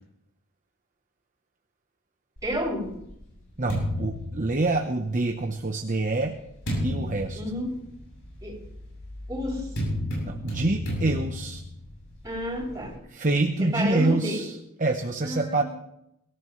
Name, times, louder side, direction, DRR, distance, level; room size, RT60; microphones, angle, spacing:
sound 1, 2.4-5.2 5.9-12.9, equal, 60° left, 7.6 m, -33 dB
voice 1, 2.4-3.0 7.3-7.8 8.4-8.5 9.3-9.7 12.2-12.9 13.7-14.5 15.2-15.6, equal, 15° right, -5 dB, 6.4 m, -30 dB
voice 2, 3.6-6.4 6.8-7.4 10.2-11.6 13.1-15.6, right 2 dB, 35° right, 4 dB, 0.9 m, -26 dB
23.0 x 14.5 x 3.2 m, 0.80 s
head